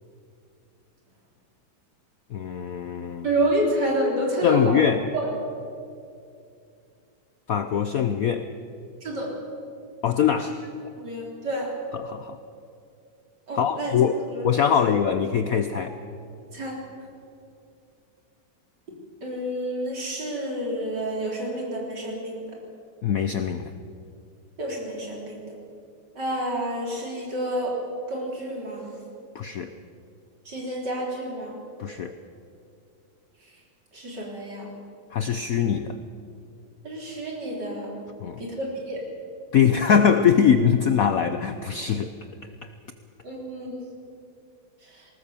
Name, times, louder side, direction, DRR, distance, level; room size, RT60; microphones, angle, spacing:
voice 1, 2.3-3.3 4.4-5.0 7.5-8.5 10.0-10.6 12.0-12.4 13.6-14.2 14.4-15.9 23.0-23.7 29.3-29.7 31.8-32.1 35.1-36.0 38.2-38.5 39.5-42.1 42.6-42.7, left 7 dB, 65° left, 10 dB, 0.9 m, -22 dB
voice 2, 3.2-5.3 9.0-9.3 10.4-10.5 11.0-11.7 13.5-14.0 14.3-14.4 14.8-14.9 15.7-15.8 16.5-16.8 19.2-22.6 24.6-25.5 26.2-27.8 28.1-28.9 30.5-31.6 33.9-34.7 36.8-37.9 38.4-39.0 43.2-43.8 44.9-45.1, right 1 dB, 55° right, -1 dB, 4.3 m, -29 dB
19.5 x 19.0 x 7.1 m, 2.5 s
omnidirectional pair, 2.2 m